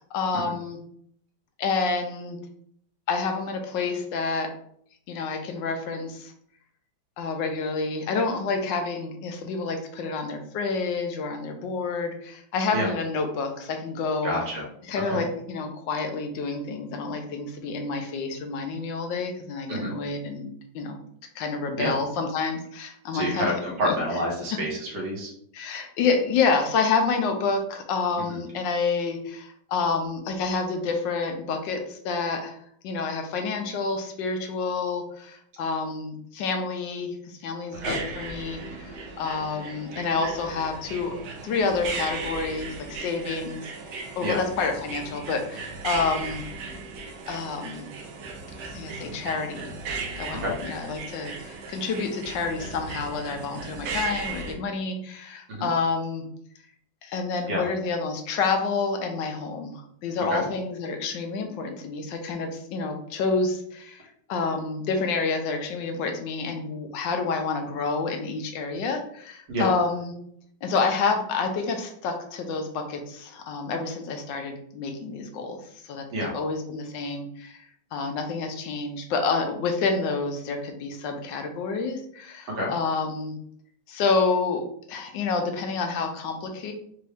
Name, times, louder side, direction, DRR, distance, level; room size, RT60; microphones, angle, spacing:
voice 1, 0.1-0.8 1.6-2.4 3.1-4.5 5.1-6.3 7.2-14.3 14.9-21.0 21.3-23.5 23.8-23.9 24.5-24.6 25.5-32.6 32.8-41.2 41.4-46.4 47.3-47.9 48.6-49.7 50.2-56.3 57.0-64.0 64.3-70.1 70.6-76.1 76.3-77.6 77.9-83.4 83.9-86.7, left 4 dB, 75° left, 4 dB, 1.3 m, -28 dB
voice 2, 14.2-14.7 14.9-15.2 19.7-19.9 21.8-22.0 23.1-25.3 28.3-28.4 37.8-38.0 44.2-44.4 50.3-50.5 55.5-55.7 57.5-57.6 60.3-60.4 69.5-69.7 76.1-76.3 82.5-82.7, equal, 60° right, -3 dB, 1.9 m, -28 dB
sound 1, 37.7-54.5, right 4 dB, 85° right, 1.5 m, -37 dB
4.6 x 2.6 x 3.4 m, 0.66 s
omnidirectional pair, 2.1 m